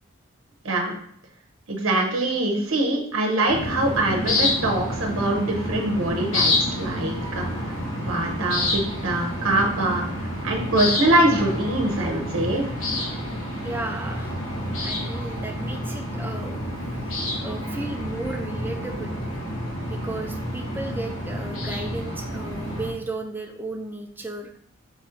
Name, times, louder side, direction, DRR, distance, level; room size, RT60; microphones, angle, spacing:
voice 1, 1.7-7.7 8.0-10.1 10.4-12.7, right 1 dB, 80° right, 1 dB, 0.7 m, -23 dB
sound 1, 3.5-22.9, left 1 dB, 80° left, 1.2 m, -28 dB
voice 2, 13.6-14.4 14.8-16.6 17.4-19.2 19.8-24.6, right 2 dB, 10° right, 3 dB, 0.4 m, -34 dB
3.8 x 3.0 x 4.2 m, 0.65 s
head